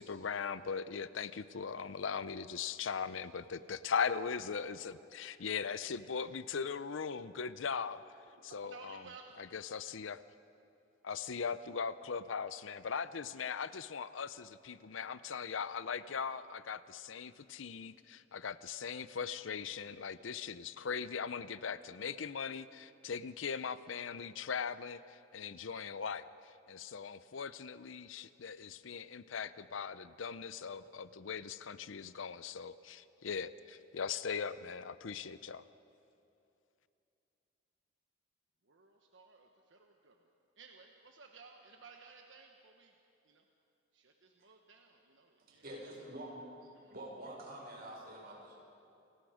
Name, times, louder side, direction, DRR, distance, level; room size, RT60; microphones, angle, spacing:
voice 1, 0.0-8.0 8.4-9.0 9.4-10.2 11.0-25.0 25.3-35.6, left 6 dB, 85° left, 15 dB, 0.6 m, -39 dB
voice 2, 8.4-9.5 38.6-40.2 40.6-42.9 43.2-43.4 43.9-46.1 46.7-46.9, right 4 dB, 70° right, 3 dB, 1.2 m, -57 dB
voice 3, 45.5-46.4 46.9-48.5, right 1 dB, 50° right, -2 dB, 5.5 m, -47 dB
28.5 x 18.0 x 5.1 m, 2.7 s
head